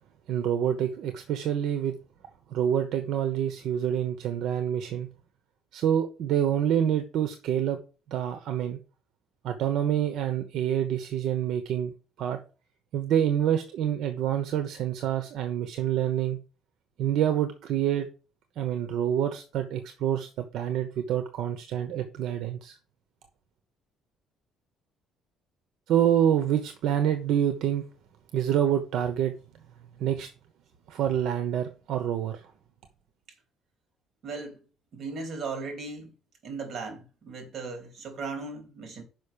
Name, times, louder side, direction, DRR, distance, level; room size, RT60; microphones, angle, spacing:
voice 1, 0.3-1.9 2.5-5.1 5.7-7.8 8.1-8.8 9.4-11.9 12.2-12.4 12.9-16.4 17.0-18.1 18.6-22.8 25.9-27.8 28.3-29.3 30.0-30.3 30.9-32.4, right 10 dB, 65° right, 0.9 m, -27 dB
voice 2, 34.2-34.6 34.9-36.1 36.4-39.0, right 4 dB, 40° right, 2.8 m, -37 dB
6.2 x 5.4 x 6.8 m
cardioid pair, 160°, 0 cm